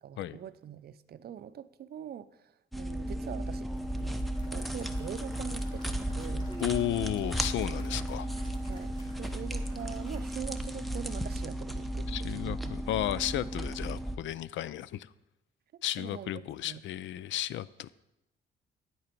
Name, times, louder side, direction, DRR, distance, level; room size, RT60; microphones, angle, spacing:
voice 1, 0.0-6.5 7.9-8.1 8.7-12.8 15.7-16.8, right 9 dB, 55° right, 14 dB, 0.5 m, -44 dB
sound 1, 2.7-14.2, right 1 dB, ahead, 0.7 m, -34 dB
Applause / Crowd, 3.5-11.7, equal, 25° left, 3.3 m, -57 dB
voice 2, 6.6-8.3 12.1-15.1 15.8-17.9, left 12 dB, 70° left, 18 dB, 0.4 m, -33 dB
9.5 x 8.6 x 4.5 m, 0.92 s
cardioid pair, 90°, 20 cm